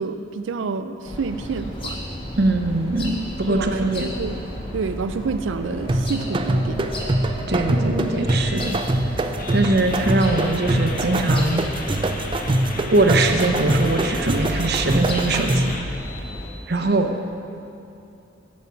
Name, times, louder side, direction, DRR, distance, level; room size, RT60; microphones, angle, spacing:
voice 1, 0.0-2.0 3.5-4.4 4.7-6.9, right 4 dB, 90° right, 11 dB, 0.4 m, -28 dB
sound 1, 1.0-16.5, equal, 30° left, 1.3 m, -33 dB
voice 2, 2.4-4.1 7.5-8.8 9.5-11.6 12.9-15.7 16.7-17.1, right 2 dB, 60° right, 5 dB, 0.8 m, -21 dB
sound 2, 5.9-15.8, right 1 dB, 25° right, 0.4 m, -24 dB
sound 3, 8.3-8.7 9.3-16.8, left 2 dB, 50° left, 0.9 m, -35 dB
9.4 x 7.4 x 5.7 m, 2.7 s
head